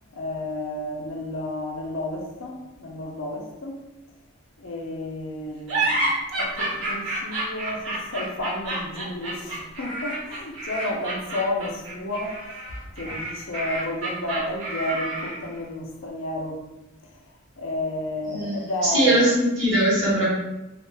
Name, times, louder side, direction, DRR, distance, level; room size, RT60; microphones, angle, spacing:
voice 1, 0.1-3.8 4.6-12.4 12.8-16.6 17.0-19.3, left 1 dB, 60° left, 1 dB, 0.5 m, -32 dB
sound 1, 5.7-15.5, right 2 dB, 85° right, 1.1 m, -29 dB
voice 2, 18.8-20.2, right 1 dB, 60° right, -7 dB, 1.2 m, -20 dB
2.4 x 2.2 x 3.1 m, 0.98 s
head